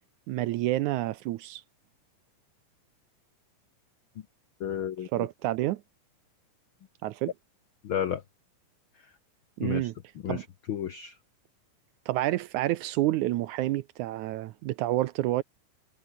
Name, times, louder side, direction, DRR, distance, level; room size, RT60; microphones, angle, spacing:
voice 1, 0.3-1.6 5.1-5.8 7.0-7.3 9.6-9.9 10.3-10.4 12.1-15.4, right 16 dB, 80° right, 1.9 m, -29 dB
voice 2, 4.6-5.3 7.8-8.2 9.6-9.9 10.2-11.2, left 9 dB, 85° left, 1.1 m, -32 dB
omnidirectional pair, 3.9 m